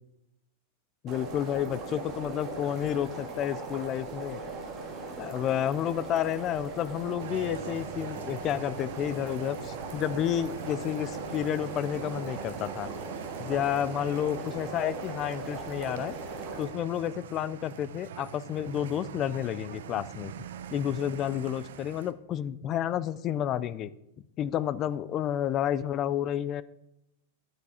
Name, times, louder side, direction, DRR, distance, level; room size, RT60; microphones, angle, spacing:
voice 1, 1.0-4.4 5.2-12.9 13.4-16.2 16.6-20.3 20.7-23.9 24.4-26.6, left 10 dB, 25° left, 17 dB, 0.3 m, -30 dB
sound 1, 1.1-16.6, right 3 dB, 25° right, 2.0 m, -39 dB
sound 2, 7.2-22.1, right 9 dB, 75° right, 0.7 m, -43 dB
10.5 x 8.2 x 4.3 m, 0.87 s
supercardioid pair, 170°, 0 cm